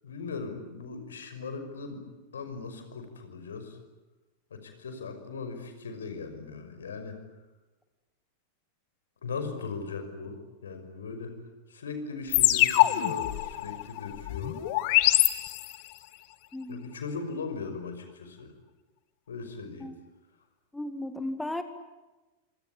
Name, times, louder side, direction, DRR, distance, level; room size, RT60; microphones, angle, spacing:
voice 1, 0.0-2.0 2.3-3.8 4.5-7.2 9.2-11.3 11.7-14.6 16.7-18.5 19.3-19.9, left 4 dB, 70° left, 7 dB, 5.6 m, -38 dB
sound 1, 12.3-16.0, left 17 dB, 45° left, 1.9 m, -24 dB
voice 2, 16.5-16.9 19.8-20.0 20.7-21.6, left 1 dB, 5° left, 9 dB, 2.0 m, -35 dB
26.5 x 25.5 x 8.6 m, 1.1 s
figure-of-eight pair, 90°, 0 cm